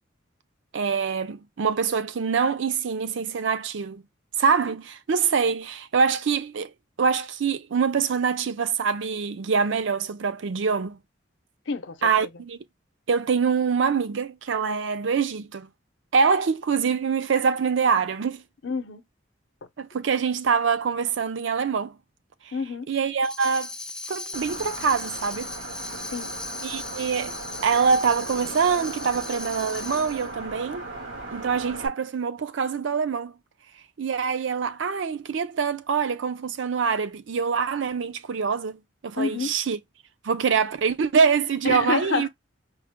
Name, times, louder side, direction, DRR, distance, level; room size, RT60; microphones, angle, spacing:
voice 1, 0.7-4.0 4.4-6.7 7.0-11.0 12.0-12.6 13.1-15.7 16.1-18.4 19.8-22.0 22.9-23.7 24.1-25.5 26.6-27.4 27.6-30.9 31.3-33.3 34.0-39.8 40.2-42.3, right 5 dB, 70° right, 0.5 m, -24 dB
voice 2, 11.7-12.3 18.6-19.0 22.5-22.9 26.1-26.3 39.2-39.5 41.6-42.3, left 4 dB, 70° left, 0.6 m, -28 dB
Tambourine, 23.2-30.3, left 3 dB, 5° left, 0.4 m, -37 dB
sound 1, 24.3-31.9, right 2 dB, 85° right, 1.9 m, -38 dB
4.7 x 2.0 x 3.6 m
head